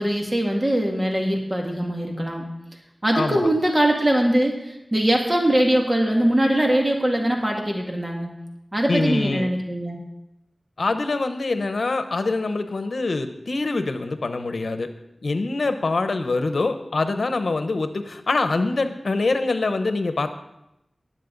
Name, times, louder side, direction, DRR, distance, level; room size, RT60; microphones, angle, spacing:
voice 1, 0.0-2.5 3.0-8.3 8.7-10.0, right 1 dB, 30° right, 0 dB, 2.1 m, -22 dB
voice 2, 3.1-3.5 8.9-9.5 10.8-14.9 15.2-20.3, left 3 dB, 85° left, 9 dB, 0.8 m, -24 dB
20.5 x 7.6 x 3.9 m, 0.87 s
wide cardioid pair, 55°, 0 cm